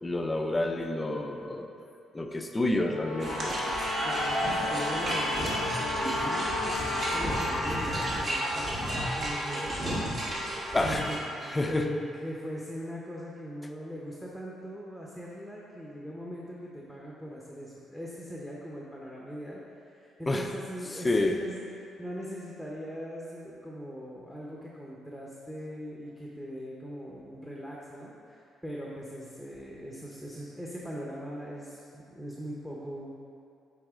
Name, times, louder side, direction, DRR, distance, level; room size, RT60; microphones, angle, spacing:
voice 1, 0.0-1.7 2.1-3.6 4.0-4.1 10.7-11.0 11.5-11.9 20.3-20.5 21.0-21.4, left 2 dB, 20° left, 4 dB, 0.5 m, -29 dB
sound 1, 2.9-7.6, left 3 dB, 90° left, 0.7 m, -36 dB
sound 2, 3.2-11.2, equal, 45° right, 1.5 m, -31 dB
voice 2, 4.0-10.1 10.4-11.2 11.4-33.2, equal, 5° right, -4 dB, 0.8 m, -40 dB
7.9 x 4.0 x 3.6 m, 2.5 s
cardioid pair, 90°, 0 cm